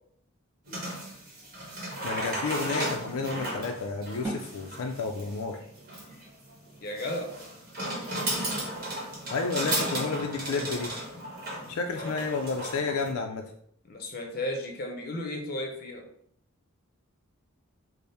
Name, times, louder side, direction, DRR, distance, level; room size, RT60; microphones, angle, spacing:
sound 1, 0.7-13.1, right 1 dB, 40° right, 1.1 m, -35 dB
voice 1, 2.0-5.6 9.3-10.9 11.7-13.5, left 4 dB, 80° left, 3 dB, 0.4 m, -31 dB
sound 2, 4.2-10.0, right 1 dB, 10° right, 0.8 m, -44 dB
voice 2, 6.8-7.3 12.0-12.1 13.8-16.1, left 1 dB, 40° left, 3 dB, 0.6 m, -34 dB
3.5 x 2.0 x 4.1 m, 0.66 s
head